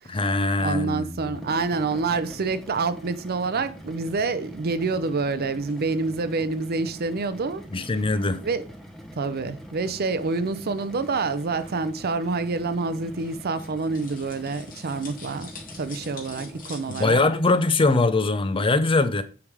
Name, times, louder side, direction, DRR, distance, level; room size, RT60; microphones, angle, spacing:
voice 1, 0.1-1.4 7.7-8.4 17.0-19.2, left 3 dB, 25° left, 0.5 m, -22 dB
voice 2, 0.6-7.6 8.4-8.6 9.2-15.5 15.8-17.2, right 4 dB, 45° right, 0.6 m, -27 dB
sound 1, 1.2-17.7, equal, ahead, 0.9 m, -43 dB
sound 2, 5.4-17.1, left 4 dB, 40° left, 2.1 m, -49 dB
8.6 x 3.5 x 4.8 m
head